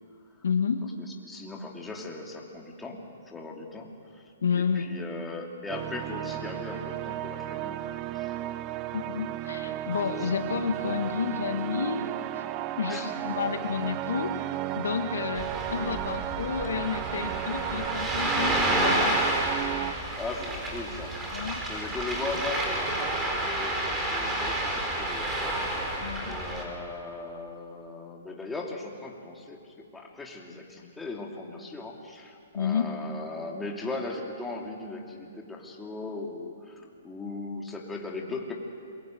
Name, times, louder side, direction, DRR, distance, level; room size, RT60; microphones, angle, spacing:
voice 1, 0.4-0.9 4.4-5.0 8.9-12.4 12.8-14.5 14.7-19.2 21.3-21.6 26.0-26.4 32.5-32.9, left 6 dB, 75° left, 7 dB, 1.7 m, -30 dB
voice 2, 1.0-4.2 4.5-8.3 12.9-13.1 20.2-21.2 21.7-29.6 29.9-38.5, left 3 dB, 5° left, 0 dB, 2.9 m, -38 dB
sound 1, 5.7-19.9, right 14 dB, 30° right, 0.8 m, -34 dB
Ocean, 15.4-26.7, right 1 dB, 15° right, 4.2 m, -30 dB
27.5 x 22.5 x 7.8 m, 2.3 s
hypercardioid pair, 145°, 0 cm